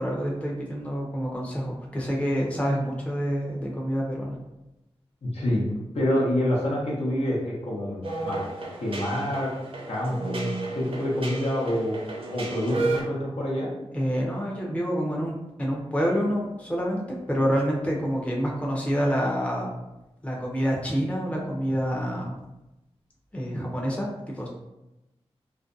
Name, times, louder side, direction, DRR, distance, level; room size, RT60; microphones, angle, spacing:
voice 1, 0.0-4.4 13.9-19.7 20.2-22.4 23.3-24.5, equal, 10° left, -2 dB, 0.5 m, -27 dB
voice 2, 5.3-5.6 5.9-8.4 8.8-9.5 9.9-12.0 12.3-13.7, left 1 dB, 70° left, -5 dB, 0.8 m, -27 dB
sound 1, 8.0-13.0, right 3 dB, 60° right, 0.5 m, -32 dB
2.5 x 2.2 x 2.5 m, 0.97 s
cardioid pair, 55°, 11 cm